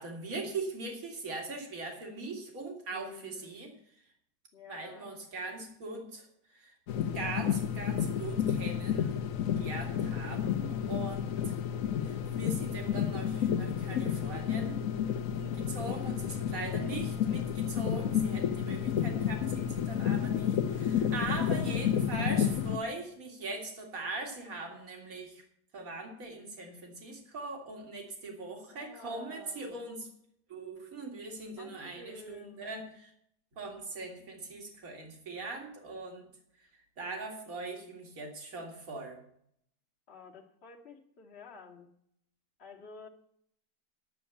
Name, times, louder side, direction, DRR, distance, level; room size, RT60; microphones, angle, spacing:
voice 1, 0.0-3.7 4.7-6.7 7.1-9.2 9.6-11.6 12.0-14.8 15.3-25.4 25.7-30.1 30.5-33.1 33.6-36.3 37.0-39.2, right 3 dB, 60° right, 2 dB, 2.6 m, -41 dB
voice 2, 2.9-3.6 4.5-5.2 15.7-16.3 21.2-21.9 28.7-29.8 31.6-32.7 37.5-37.9 40.1-41.9 42.6-43.1, left 4 dB, 40° left, 0 dB, 1.7 m, -51 dB
sound 1, 6.9-22.8, left 8 dB, 65° left, 1.0 m, -31 dB
10.5 x 7.0 x 8.2 m, 0.69 s
omnidirectional pair, 1.7 m